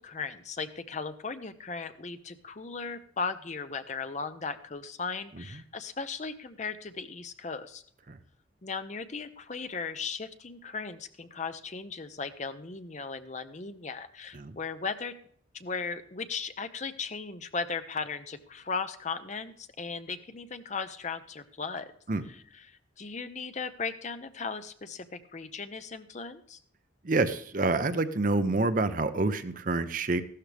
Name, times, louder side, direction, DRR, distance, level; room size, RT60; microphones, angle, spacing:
voice 1, 0.0-7.8 8.6-15.1 15.5-21.9 22.3-26.6, left 4 dB, 35° left, 10 dB, 0.7 m, -37 dB
voice 2, 27.0-30.2, right 3 dB, 45° right, 10 dB, 0.7 m, -27 dB
14.5 x 12.5 x 3.4 m, 0.62 s
head